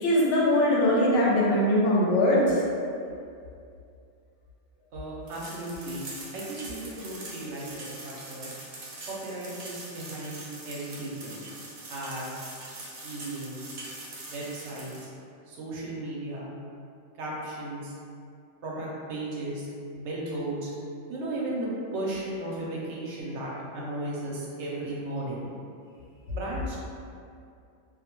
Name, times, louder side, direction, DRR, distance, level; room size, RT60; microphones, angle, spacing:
voice 1, 0.0-2.6, left 1 dB, 75° left, -5 dB, 0.9 m, -21 dB
voice 2, 4.9-6.0 6.3-8.5 9.1-11.4 11.9-12.5 13.0-13.6 14.3-15.1 15.5-16.5 17.2-17.9 18.6-19.7 20.0-20.7 21.1-25.5 26.3-26.8, right 1 dB, 75° right, -5 dB, 0.9 m, -35 dB
sound 1, 5.3-15.1, right 2 dB, 60° right, 0.4 m, -43 dB
2.3 x 2.1 x 2.9 m, 2.4 s
omnidirectional pair, 1.2 m